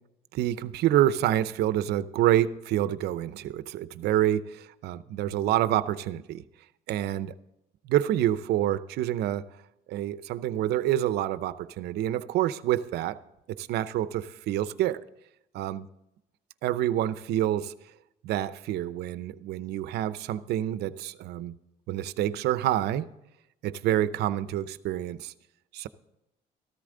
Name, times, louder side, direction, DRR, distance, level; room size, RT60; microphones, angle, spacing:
voice 1, 0.3-6.4 6.9-7.3 7.9-9.4 9.9-13.2 13.5-15.0 15.5-15.9 16.6-17.7 18.2-21.6 21.9-23.1 23.6-25.3 25.7-25.9, right 12 dB, 75° right, 0.7 m, -27 dB
14.0 x 13.5 x 3.8 m
cardioid pair, 110°, 17 cm